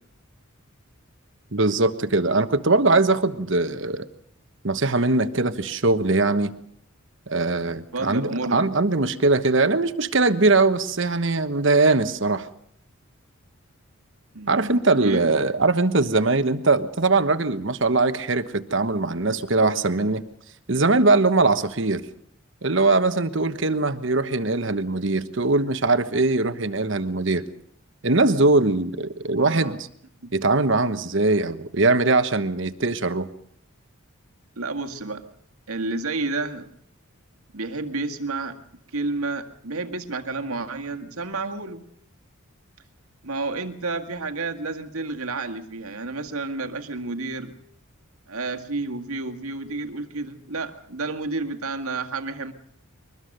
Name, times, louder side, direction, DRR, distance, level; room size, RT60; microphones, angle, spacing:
voice 1, 1.5-4.1 4.6-6.5 7.3-12.5 14.5-20.2 20.7-22.0 22.6-27.4 28.0-29.8 30.3-33.3, right 3 dB, 55° right, 11 dB, 1.2 m, -21 dB
voice 2, 7.9-8.7 14.3-15.3 29.4-29.8 30.2-30.3 34.6-35.2 35.7-36.7 37.5-38.6 38.9-41.8 43.2-47.6 48.3-52.5, right 3 dB, 80° right, 6 dB, 2.0 m, -30 dB
23.0 x 21.0 x 6.7 m, 0.67 s
head